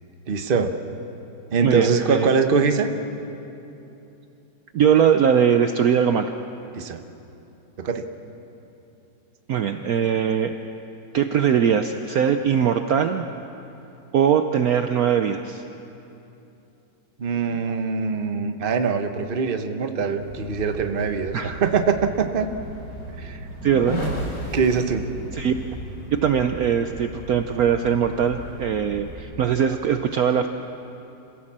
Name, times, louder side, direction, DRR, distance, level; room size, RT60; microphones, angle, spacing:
voice 1, 0.3-0.8 1.5-2.9 6.7-7.0 7.8-8.0 17.2-22.5 23.2-23.4 24.5-25.1, right 5 dB, 35° right, 7 dB, 1.0 m, -23 dB
voice 2, 1.6-2.3 4.7-6.3 9.5-10.5 11.1-13.2 14.1-15.6 21.3-21.6 23.6-24.0 25.3-25.6 26.1-30.5, right 8 dB, 65° right, 7 dB, 1.0 m, -21 dB
sound 1, 20.2-29.2, right 1 dB, 75° left, 8.3 m, -35 dB
27.5 x 16.5 x 7.4 m, 2.9 s
omnidirectional pair, 2.0 m